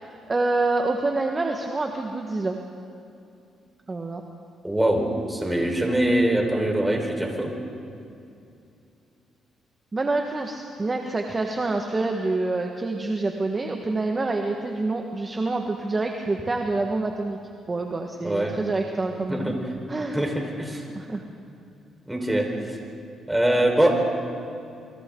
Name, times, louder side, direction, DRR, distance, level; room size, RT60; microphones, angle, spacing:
voice 1, 0.0-2.6 3.9-4.2 9.9-17.4 17.7-19.6 19.9-20.2 20.9-21.2 22.4-22.5, right 2 dB, 25° right, 2 dB, 1.5 m, -27 dB
voice 2, 4.6-7.5 18.2-18.6 19.3-19.6 20.1-20.8 22.1-22.8 23.3-23.9, right 1 dB, 10° right, 1 dB, 4.5 m, -23 dB
28.5 x 24.0 x 3.9 m, 2.6 s
cardioid pair, 90°, 0 cm